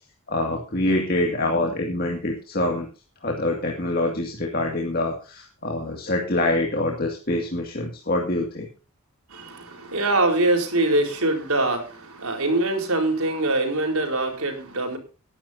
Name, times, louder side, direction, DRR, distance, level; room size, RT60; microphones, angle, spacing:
voice 1, 0.3-2.9 3.2-8.7, left 1 dB, 45° left, 0 dB, 2.2 m, -25 dB
voice 2, 9.3-15.0, right 2 dB, 85° right, 3 dB, 4.3 m, -23 dB
20.0 x 11.0 x 2.7 m, 0.34 s
head